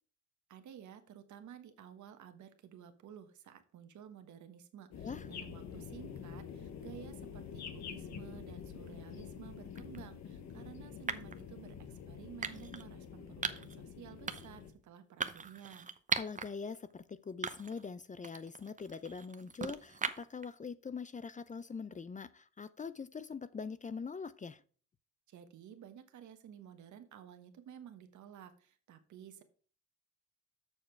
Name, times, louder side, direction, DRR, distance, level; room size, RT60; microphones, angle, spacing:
voice 1, 0.5-15.9 25.3-29.4, right 9 dB, 70° right, 1.4 m, -53 dB
sound 1, 4.9-14.7, left 7 dB, 65° left, 1.3 m, -47 dB
sound 2, 9.8-10.0 11.1-11.4 12.4-12.8 13.4-13.8 14.3-14.6 15.2-16.5 16.9-17.0 17.4-17.9 18.2-20.4, right 5 dB, 25° right, 0.8 m, -39 dB
voice 2, 16.1-24.6, left 5 dB, 25° left, 0.5 m, -43 dB
7.2 x 6.5 x 4.6 m
cardioid pair, 90°, 30 cm